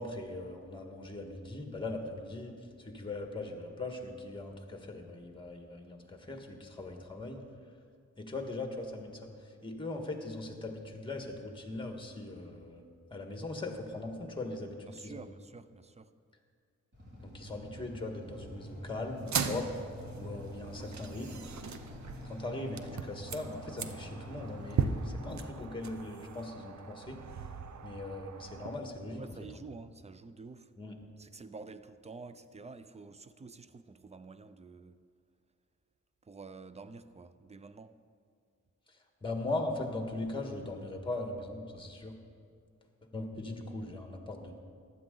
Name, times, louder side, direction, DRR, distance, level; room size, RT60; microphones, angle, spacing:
voice 1, 0.0-7.4 8.2-12.8 13.1-15.2 17.2-19.7 20.1-21.5 22.2-27.2 27.8-29.2 29.5-29.6 30.8-31.0 38.9-42.1 43.1-44.6, left 2 dB, 15° left, 1.7 m, -40 dB
voice 2, 14.9-16.1 29.1-30.7 31.2-35.0 36.2-38.0, right 4 dB, 20° right, 0.5 m, -49 dB
Motorcycle / Idling, 16.9-26.9, equal, 40° right, 3.8 m, -47 dB
sound 1, 19.2-28.8, right 6 dB, 65° right, 0.7 m, -39 dB
15.0 x 10.5 x 3.9 m
wide cardioid pair, 85°, 30 cm